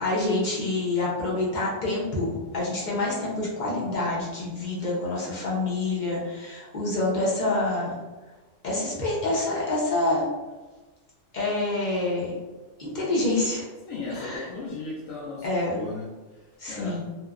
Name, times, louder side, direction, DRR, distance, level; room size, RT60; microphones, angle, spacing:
voice 1, 0.0-7.9 8.6-10.2 11.3-12.3 12.8-13.7 14.1-14.5 15.4-15.7 16.6-17.0, left 2 dB, 45° left, -5 dB, 0.7 m, -27 dB
voice 2, 13.9-15.5 15.7-16.1 16.7-17.0, left 3 dB, 80° left, -6 dB, 1.0 m, -35 dB
2.8 x 2.1 x 2.3 m, 1.2 s
omnidirectional pair, 1.4 m